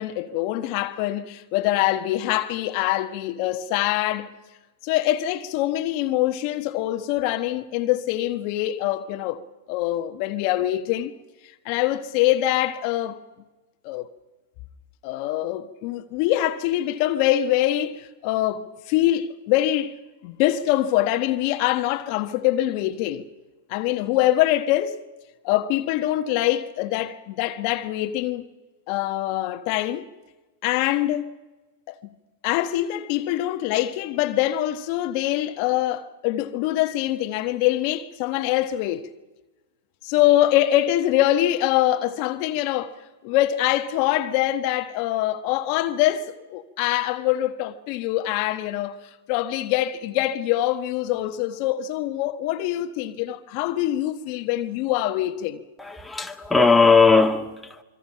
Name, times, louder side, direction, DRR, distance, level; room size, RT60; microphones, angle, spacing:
voice 1, 0.0-4.3 4.8-9.4 9.7-11.1 11.6-13.2 13.8-14.1 15.0-20.0 20.2-23.3 23.7-25.0 25.4-28.4 28.9-30.0 30.6-31.3 31.9-32.0 32.4-39.1 40.0-43.0 43.2-49.0 49.3-55.6, left 14 dB, 50° left, 1.3 m, -24 dB
voice 2, 55.8-57.8, left 4 dB, 5° left, 1.8 m, -18 dB
25.5 x 24.0 x 5.8 m
hypercardioid pair, 115°, 0 cm